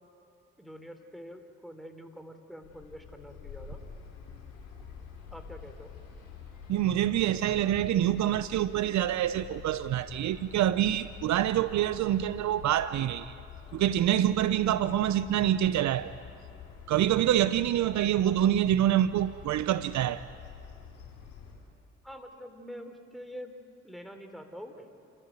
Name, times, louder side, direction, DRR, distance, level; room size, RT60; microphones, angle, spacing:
voice 1, 0.6-3.8 5.3-5.9 22.0-23.5 23.8-24.9, equal, ahead, 3.4 m, -45 dB
sound 1, 2.6-21.5, left 6 dB, 70° left, 5.6 m, -47 dB
voice 2, 6.7-13.3 13.7-16.2 16.9-20.3, right 12 dB, 60° right, 0.6 m, -26 dB
30.0 x 14.0 x 9.2 m
hypercardioid pair, 50°, 32 cm